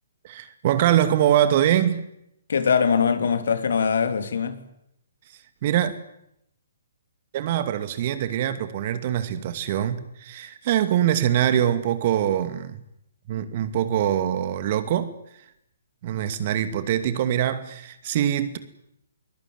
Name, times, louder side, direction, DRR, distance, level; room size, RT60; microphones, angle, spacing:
voice 1, 0.2-2.1 5.6-5.9 7.3-12.8 13.3-15.1 16.0-18.6, right 11 dB, 40° right, 2.4 m, -23 dB
voice 2, 2.5-4.7, left 6 dB, 65° left, 3.1 m, -22 dB
22.5 x 20.5 x 9.6 m
figure-of-eight pair, 130°, 0 cm